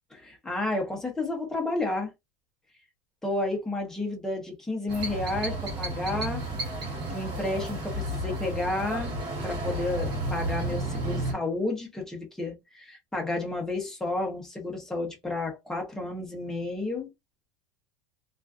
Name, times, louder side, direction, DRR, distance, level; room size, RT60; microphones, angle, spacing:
voice 1, 0.1-2.1 3.2-6.4 7.1-17.1, left 2 dB, 5° left, 0.7 m, -31 dB
sound 1, 4.9-11.3, right 1 dB, 35° right, 1.0 m, -32 dB
2.4 x 2.3 x 2.3 m
supercardioid pair, 155°, 14 cm